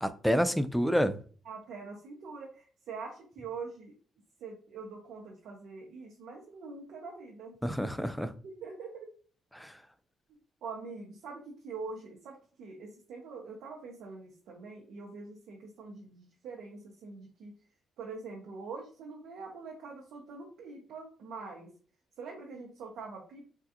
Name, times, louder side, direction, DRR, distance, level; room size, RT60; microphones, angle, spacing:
voice 1, 0.0-1.2 7.6-8.3 9.5-9.7, equal, ahead, 0.3 m, -28 dB
voice 2, 1.4-3.9 4.4-7.5 8.4-9.1 10.6-17.5 18.0-21.7 22.2-23.4, right 4 dB, 75° right, 0.7 m, -44 dB
3.5 x 2.3 x 2.7 m
cardioid pair, 90°, 0 cm